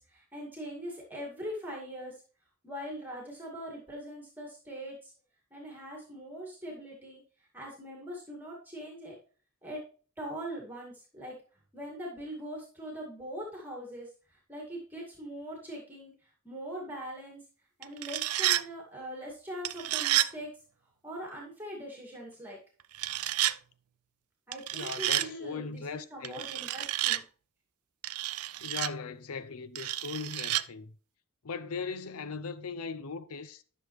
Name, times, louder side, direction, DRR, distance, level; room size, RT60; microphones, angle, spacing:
voice 1, 0.0-2.2 2.6-5.1 5.5-7.2 7.5-9.2 9.6-9.8 10.2-11.4 11.7-17.4 17.8-20.6 21.0-22.6 24.5-27.2, equal, 10° right, 2.2 m, -42 dB
sound 1, 17.8-18.6 19.6-20.3 22.9-23.6 24.5-25.3 26.2-27.2 28.0-28.9 29.8-30.6, right 15 dB, 85° right, 0.4 m, -30 dB
voice 2, 24.7-26.4 28.6-31.0 31.4-33.6, left 5 dB, 90° left, 0.7 m, -39 dB
12.0 x 6.6 x 3.2 m
head